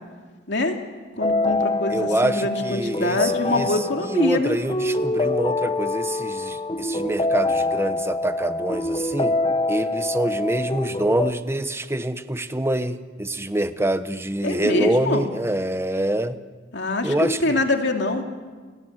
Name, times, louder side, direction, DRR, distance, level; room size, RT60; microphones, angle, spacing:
voice 1, 0.5-0.8 1.2-4.6 14.4-15.2 16.7-18.2, left 2 dB, 65° left, 3 dB, 2.8 m, -24 dB
sound 1, 1.2-11.3, left 2 dB, 25° left, 0.9 m, -25 dB
voice 2, 1.9-9.4 9.7-16.4 17.0-17.6, right 1 dB, 15° right, 11 dB, 1.0 m, -25 dB
30.0 x 18.5 x 7.9 m, 1.4 s
head